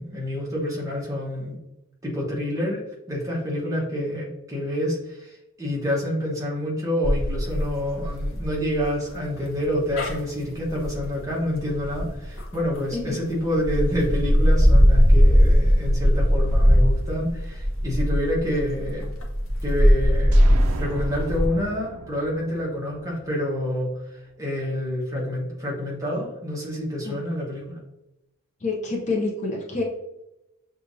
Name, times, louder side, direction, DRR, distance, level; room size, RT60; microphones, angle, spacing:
voice 1, 0.0-1.6 2.0-2.8 3.1-19.1 19.6-27.6, left 1 dB, 15° right, -4 dB, 1.1 m, -28 dB
sound 1, 7.0-13.0 13.5-21.5, equal, 60° left, 0.8 m, -20 dB
sound 2, 20.3-24.0, right 4 dB, 85° right, 0.3 m, -39 dB
voice 2, 28.6-29.8, left 3 dB, 35° left, -2 dB, 0.6 m, -27 dB
6.6 x 2.6 x 2.6 m, 0.92 s
head